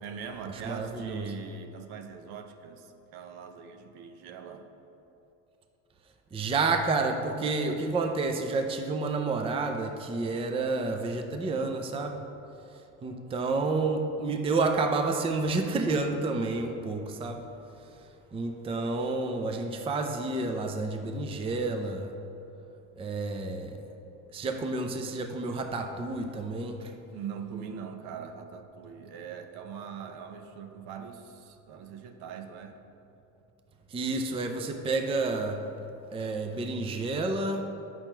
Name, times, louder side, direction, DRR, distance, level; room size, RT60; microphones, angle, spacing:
voice 1, 0.0-4.7 27.1-32.8, right 7 dB, 65° right, 7 dB, 0.8 m, -42 dB
voice 2, 0.6-1.3 6.3-12.2 13.0-17.4 18.3-22.1 23.0-23.8 24.3-26.9 33.9-35.6 36.1-37.6, right 3 dB, 15° right, 5 dB, 0.5 m, -30 dB
8.7 x 6.1 x 4.5 m, 2.9 s
supercardioid pair, 115°, 41 cm